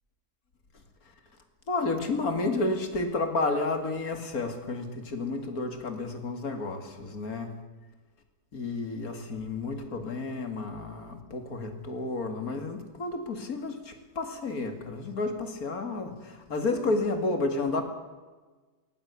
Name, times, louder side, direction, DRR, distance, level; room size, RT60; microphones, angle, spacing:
voice 1, 1.7-7.6 8.5-17.8, left 3 dB, 65° left, 6 dB, 2.8 m, -31 dB
18.5 x 16.5 x 8.3 m, 1.3 s
omnidirectional pair, 1.7 m